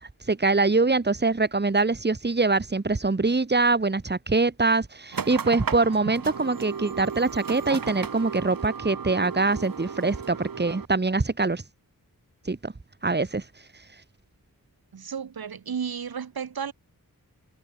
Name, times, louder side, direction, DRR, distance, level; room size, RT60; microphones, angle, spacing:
voice 1, 0.3-11.6 12.5-12.7 13.0-13.4, right 3 dB, 30° right, 1.6 m, -24 dB
sound 1, 5.1-10.9, right 6 dB, 70° right, 1.3 m, -35 dB
voice 2, 14.9-16.7, right 7 dB, 90° right, 1.2 m, -33 dB
wide cardioid pair, 90°, 36 cm